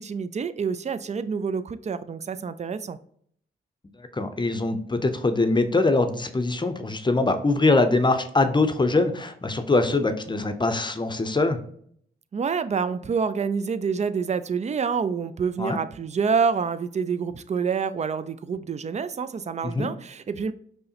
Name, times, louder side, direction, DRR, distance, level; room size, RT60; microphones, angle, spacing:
voice 1, 0.0-3.0 12.3-20.5, right 6 dB, 35° right, 12 dB, 0.4 m, -27 dB
voice 2, 4.0-11.6 15.6-15.8 19.6-19.9, left 2 dB, 20° left, 7 dB, 0.6 m, -23 dB
5.3 x 2.1 x 2.8 m, 0.63 s
supercardioid pair, 45°, 21 cm